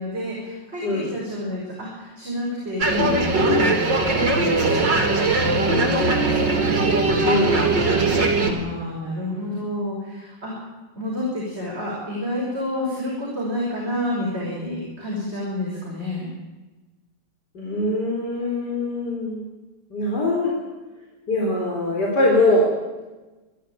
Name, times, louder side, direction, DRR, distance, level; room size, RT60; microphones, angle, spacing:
voice 1, 0.0-5.2 5.5-6.6 8.4-10.5 10.9-16.3, left 1 dB, 35° right, -4 dB, 6.3 m, -29 dB
voice 2, 0.8-1.1 7.2-7.6 17.5-19.4 19.9-20.5 21.3-22.7, left 2 dB, 70° left, -2 dB, 4.5 m, -22 dB
sound 1, 2.8-8.5, right 2 dB, 90° right, 4.1 m, -20 dB
27.0 x 12.5 x 9.1 m, 1.2 s
omnidirectional pair, 1.9 m